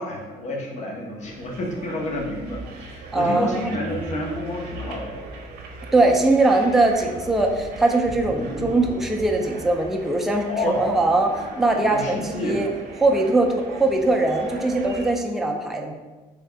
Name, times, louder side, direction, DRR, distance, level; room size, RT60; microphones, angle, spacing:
voice 1, 0.0-5.2 8.4-8.7 10.5-10.8 11.6-12.6, left 1 dB, 45° left, -1 dB, 0.8 m, -30 dB
sound 1, 1.2-15.1, right 3 dB, 65° right, 0.7 m, -39 dB
voice 2, 3.1-3.7 5.9-12.7 13.0-13.5 13.8-15.9, right 2 dB, ahead, 2 dB, 0.3 m, -21 dB
3.4 x 2.8 x 3.3 m, 1.2 s
cardioid pair, 110°, 17 cm